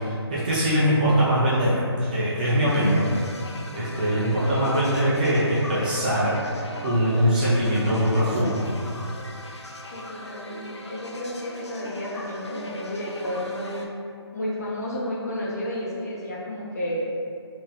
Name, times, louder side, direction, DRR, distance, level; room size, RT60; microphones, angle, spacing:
voice 1, 0.0-3.0 3.7-6.3 6.8-8.7, equal, 20° right, -9 dB, 0.4 m, -22 dB
sound 1, 2.7-13.9, left 1 dB, 85° left, 0.4 m, -40 dB
voice 2, 2.9-3.2 4.4-4.9 9.9-13.9 14.3-17.1, left 1 dB, 35° left, -5 dB, 0.6 m, -32 dB
2.8 x 2.2 x 3.2 m, 2.3 s
figure-of-eight pair, 150°, 14 cm